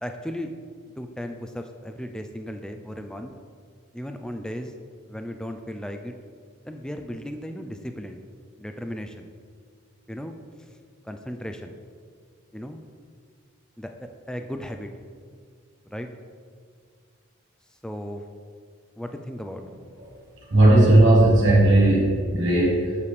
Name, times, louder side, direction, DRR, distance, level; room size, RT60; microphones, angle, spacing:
voice 1, 0.0-0.5 1.0-3.3 3.9-4.7 5.1-6.1 6.6-8.2 8.6-9.3 10.1-10.8 11.0-11.8 12.5-12.8 13.8-14.9 15.9-16.1 17.8-18.3 19.0-19.6, equal, 5° left, 5 dB, 0.3 m, -36 dB
voice 2, 20.5-23.1, right 1 dB, 60° right, -5 dB, 1.5 m, -17 dB
8.4 x 6.9 x 3.2 m, 2.1 s
head